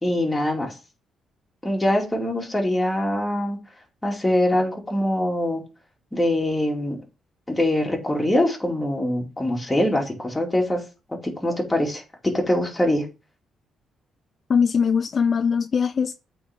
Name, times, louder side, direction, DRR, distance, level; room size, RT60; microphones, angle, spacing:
voice 1, 0.0-0.7 1.6-3.6 4.0-5.6 6.1-7.0 7.5-10.8 11.4-13.1, left 1 dB, 15° left, 2.5 m, -23 dB
voice 2, 14.5-16.2, left 6 dB, 45° left, 0.3 m, -21 dB
8.5 x 3.9 x 3.6 m
cardioid pair, 90°, 0 cm